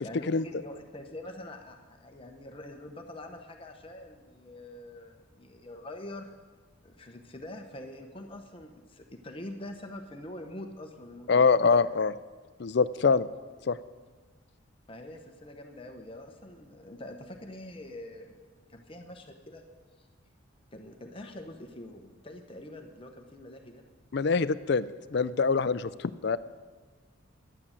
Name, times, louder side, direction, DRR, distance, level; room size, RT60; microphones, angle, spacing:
voice 1, 0.0-6.4 6.8-11.9 14.9-19.6 20.7-23.8, left 1 dB, 25° left, 4 dB, 0.9 m, -44 dB
voice 2, 11.3-12.1 12.6-13.3 13.7-13.8 24.1-26.4, left 5 dB, 55° left, 16 dB, 0.4 m, -24 dB
11.0 x 8.6 x 8.7 m, 1.4 s
head